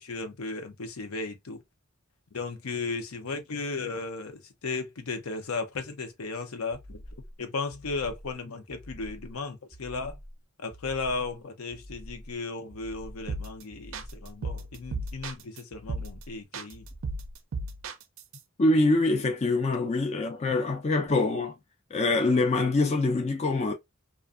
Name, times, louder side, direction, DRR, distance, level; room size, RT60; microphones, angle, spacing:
voice 1, 0.0-1.6 2.3-7.0 7.4-10.2 10.6-16.9, left 3 dB, 80° left, 0.6 m, -35 dB
sound 1, 6.7-7.3 7.7-8.3 8.7-9.3 9.7-10.3 10.7-11.3 11.7-12.3 12.7-13.3 13.7-14.3 14.7-15.3 15.7-16.3 16.7-17.4, equal, 20° right, 0.6 m, -46 dB
sound 2, 13.3-13.6 13.9-15.6 15.9-16.2 16.5-18.4, right 3 dB, 65° right, 0.4 m, -35 dB
voice 2, 18.6-21.6 21.9-23.7, left 2 dB, 30° left, 0.4 m, -24 dB
2.5 x 2.4 x 2.4 m
head